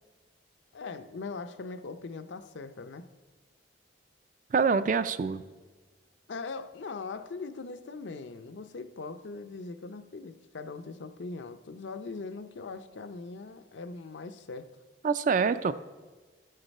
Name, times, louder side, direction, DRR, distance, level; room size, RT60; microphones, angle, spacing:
voice 1, 0.7-3.1 6.3-14.7, left 4 dB, 70° left, 9 dB, 0.5 m, -40 dB
voice 2, 4.5-5.4 15.0-15.7, right 5 dB, 40° right, 13 dB, 0.3 m, -25 dB
13.5 x 6.6 x 4.1 m, 1.3 s
head